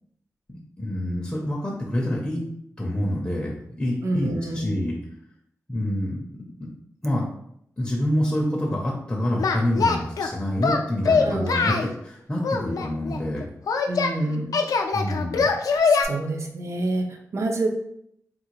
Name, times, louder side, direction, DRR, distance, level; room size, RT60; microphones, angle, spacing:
voice 1, 0.5-2.4 2.8-5.0 5.7-6.7 7.0-7.2 7.8-13.4 14.9-15.5, left 1 dB, 15° left, -3 dB, 0.5 m, -27 dB
voice 2, 4.0-4.6 11.2-11.9 13.9-14.6 16.0-17.7, right 2 dB, 50° right, 4 dB, 0.5 m, -27 dB
Singing, 9.4-10.3 10.6-11.9 12.4-14.1 14.5-16.0, left 4 dB, 85° left, 0.3 m, -22 dB
3.7 x 2.4 x 2.9 m, 0.72 s
wide cardioid pair, 180°, 6 cm